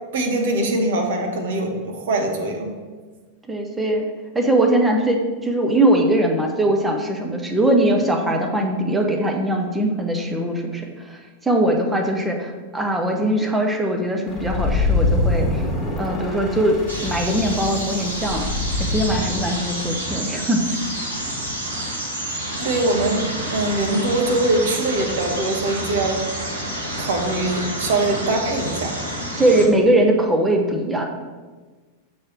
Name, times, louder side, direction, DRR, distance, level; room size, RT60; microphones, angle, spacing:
voice 1, 0.1-2.7 22.6-26.2 27.0-29.0, right 2 dB, 60° right, 2 dB, 1.0 m, -22 dB
voice 2, 3.5-4.1 4.3-15.6 16.0-18.5 18.8-20.8 29.3-31.0, right 1 dB, 10° right, 2 dB, 0.9 m, -21 dB
sound 1, 14.3-19.4, left 2 dB, 10° left, 1.5 m, -24 dB
sound 2, 16.9-29.7, right 1 dB, 75° right, 1.1 m, -29 dB
6.5 x 3.3 x 5.7 m, 1.4 s
figure-of-eight pair, 90°, 0 cm